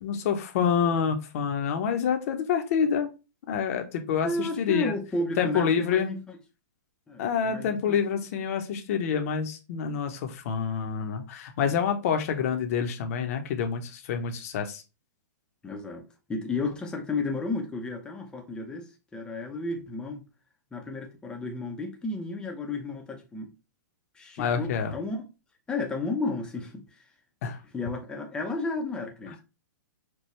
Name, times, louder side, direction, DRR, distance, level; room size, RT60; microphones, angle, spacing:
voice 1, 0.0-3.1 3.5-4.9 5.4-6.1 7.2-14.8 24.4-24.9 27.4-27.6, left 7 dB, 50° left, 0.8 m, -27 dB
voice 2, 4.2-6.4 7.1-8.0 11.6-11.8 15.6-16.0 16.3-20.2 20.7-23.5 24.2-25.3 25.7-26.8 27.7-29.4, left 2 dB, 10° left, 0.6 m, -33 dB
4.6 x 2.3 x 3.1 m
hypercardioid pair, 145°, 10 cm